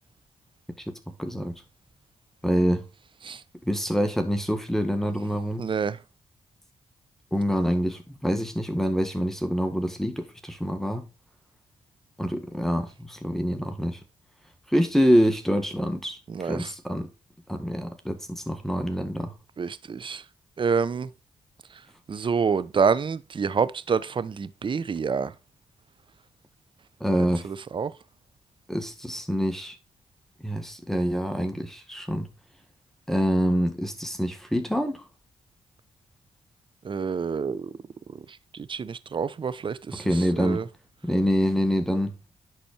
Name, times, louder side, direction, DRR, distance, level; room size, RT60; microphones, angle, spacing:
voice 1, 1.2-1.6 2.4-2.8 3.7-5.7 7.3-11.1 12.2-14.0 14.7-17.1 17.5-19.3 27.0-27.5 28.7-29.8 30.4-32.3 33.1-35.0 40.0-40.6 41.0-42.1, equal, 5° left, 1.6 m, -26 dB
voice 2, 5.6-6.0 16.3-16.7 19.6-20.2 20.6-21.1 22.1-25.3 27.4-27.9 36.8-37.7 38.7-40.1 40.4-40.6, right 5 dB, 45° right, 0.7 m, -27 dB
10.5 x 4.2 x 4.5 m
supercardioid pair, 55°, 12 cm